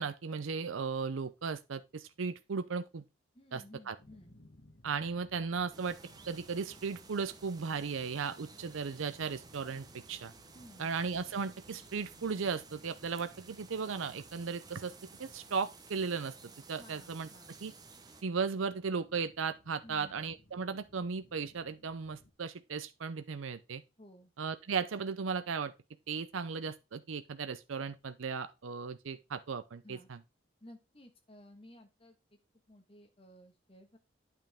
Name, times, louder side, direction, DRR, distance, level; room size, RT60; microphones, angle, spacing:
voice 1, 0.0-3.0 3.5-3.9 4.8-6.0 6.3-10.3 10.8-14.9 15.2-16.3 16.7-17.3 17.6-17.7 18.2-23.8 24.4-25.7 26.1-30.2, right 5 dB, 85° right, 0.6 m, -36 dB
voice 2, 3.3-4.4 10.5-10.9 16.8-17.6 19.8-20.2 24.0-24.3 29.8-30.1 30.6-32.2 32.7-34.0, left 1 dB, 30° left, 1.5 m, -55 dB
sound 1, 4.0-22.3, left 1 dB, 55° left, 1.4 m, -62 dB
sound 2, 5.7-18.2, right 4 dB, 20° right, 0.8 m, -55 dB
9.0 x 5.7 x 3.5 m
head